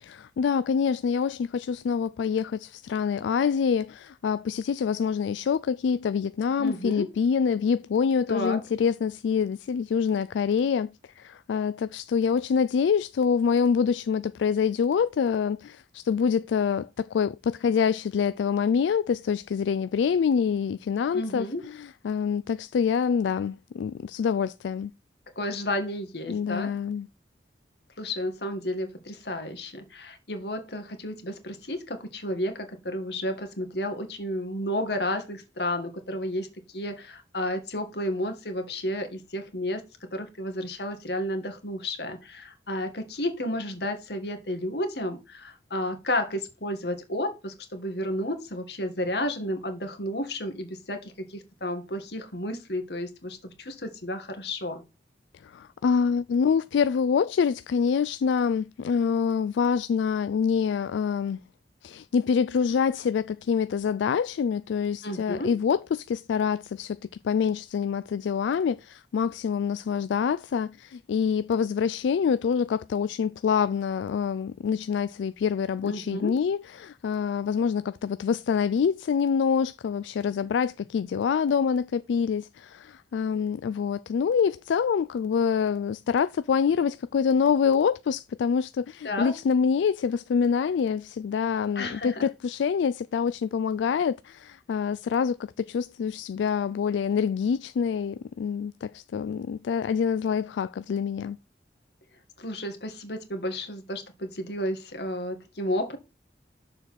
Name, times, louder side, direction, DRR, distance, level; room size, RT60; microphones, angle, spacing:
voice 1, 0.0-24.9 26.3-27.1 55.4-61.4 61.8-67.0 67.2-101.4, left 6 dB, 85° left, 0.3 m, -26 dB
voice 2, 6.6-7.1 8.3-8.6 21.1-21.6 25.4-26.7 28.0-54.8 65.0-65.5 75.8-76.3 89.0-89.3 91.8-92.3 102.4-106.0, left 1 dB, 65° left, 1.8 m, -32 dB
6.8 x 4.2 x 5.7 m
head